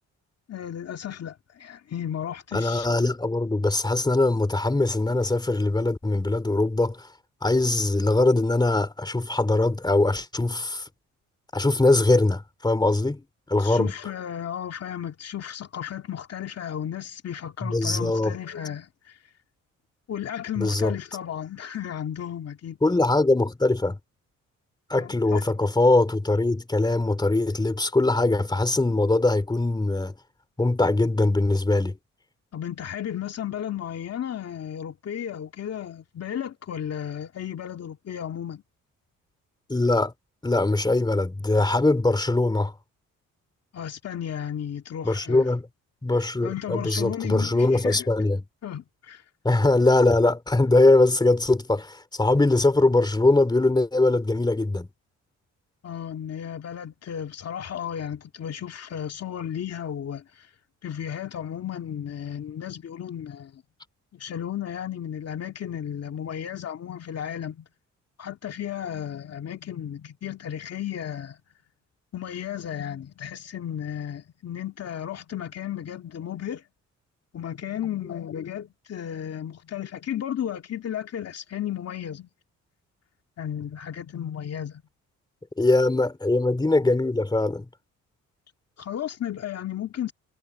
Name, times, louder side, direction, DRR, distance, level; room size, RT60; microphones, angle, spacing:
voice 1, 0.5-3.0 13.6-19.2 20.1-22.8 25.0-25.4 32.5-38.6 43.7-45.5 46.2-48.1 48.6-49.2 55.8-60.5 60.8-63.6 64.1-67.7 68.2-71.4 72.1-76.6 77.3-82.3 83.4-84.8 88.8-90.1, left 9 dB, 55° left, 2.3 m, -34 dB
voice 2, 2.5-7.1 7.4-10.9 11.5-13.2 13.5-13.9 17.6-18.3 20.6-20.9 22.8-24.0 24.9-30.1 30.6-31.9 39.7-40.1 40.4-42.7 45.0-45.6 46.0-48.4 49.4-54.9 85.6-87.6, left 2 dB, 15° left, 3.0 m, -22 dB
cardioid pair, 90°, 30 cm